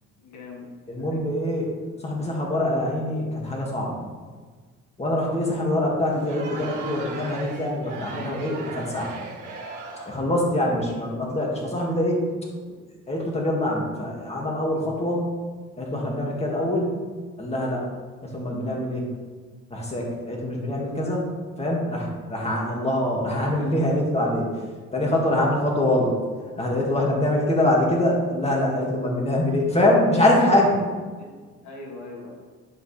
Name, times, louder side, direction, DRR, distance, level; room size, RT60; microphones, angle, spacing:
voice 1, 0.2-1.2 5.2-5.5 10.7-11.1 25.9-26.0 31.2-31.3 31.6-32.4, left 2 dB, 70° left, -1 dB, 1.8 m, -42 dB
voice 2, 0.9-1.7 2.0-4.0 5.0-9.1 10.0-12.3 13.1-15.3 15.8-17.0 17.4-17.9 18.2-19.1 19.7-24.5 24.9-26.1 26.6-30.8, left 1 dB, 20° left, -2 dB, 2.1 m, -24 dB
Crowd, 6.1-10.3, right 4 dB, 85° right, 1.6 m, -38 dB
11.5 x 5.3 x 3.3 m, 1.5 s
cardioid pair, 90°, 30 cm